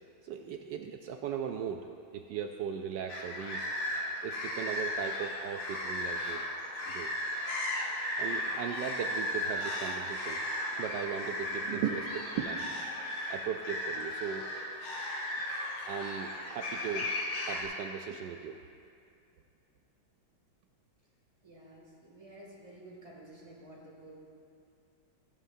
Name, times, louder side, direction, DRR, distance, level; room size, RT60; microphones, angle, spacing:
voice 1, 0.2-1.9 2.1-3.7 4.2-6.5 6.9-7.1 8.2-10.4 10.8-12.9 13.3-14.5 15.9-17.1 17.4-18.6, right 8 dB, 75° right, 4 dB, 1.0 m, -38 dB
sound 1, 3.1-17.6, left 1 dB, 85° left, 2.3 m, -35 dB
voice 2, 21.4-24.2, right 1 dB, 15° right, -4 dB, 2.3 m, -51 dB
17.0 x 11.0 x 2.7 m, 2.4 s
omnidirectional pair, 2.3 m